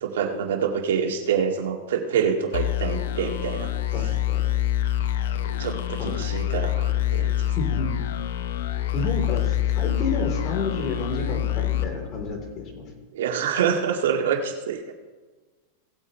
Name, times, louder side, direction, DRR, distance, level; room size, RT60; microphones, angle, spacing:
voice 1, 0.0-3.7 5.6-7.5 13.1-14.9, right 7 dB, 80° right, 3 dB, 1.9 m, -26 dB
sound 1, 2.5-12.8, left 12 dB, 75° left, 0.8 m, -26 dB
voice 2, 3.9-4.4 6.0-6.1 7.6-7.9 8.9-12.9, left 3 dB, 35° left, 1 dB, 3.7 m, -30 dB
18.0 x 8.3 x 3.3 m, 1.3 s
hypercardioid pair, 120°, 0 cm